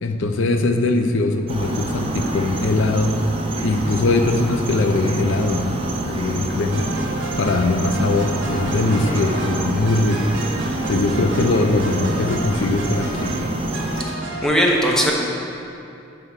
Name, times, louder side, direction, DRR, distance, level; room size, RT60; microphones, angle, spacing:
voice 1, 0.0-3.2 3.6-6.9 7.4-10.2 10.9-13.3, left 2 dB, 75° left, 5 dB, 0.5 m, -21 dB
sound 1, 1.5-14.0, right 1 dB, 30° right, 0.6 m, -27 dB
sound 2, 6.7-14.5, right 2 dB, 70° right, 0.9 m, -32 dB
voice 2, 14.4-15.1, equal, 5° left, -2 dB, 0.8 m, -18 dB
9.2 x 3.5 x 5.6 m, 2.7 s
head